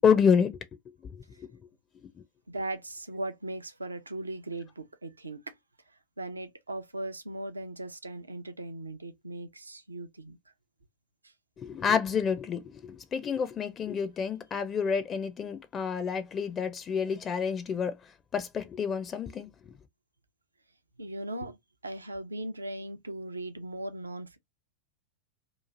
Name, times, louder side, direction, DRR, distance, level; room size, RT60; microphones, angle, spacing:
voice 1, 0.0-0.5 1.0-1.5 11.6-18.0 18.3-19.5, left 6 dB, 25° left, 0.4 m, -28 dB
voice 2, 2.5-5.6 6.2-10.4 21.0-21.6 21.8-24.4, right 2 dB, 80° right, 0.5 m, -38 dB
2.9 x 2.4 x 2.4 m
figure-of-eight pair, 90°, 0 cm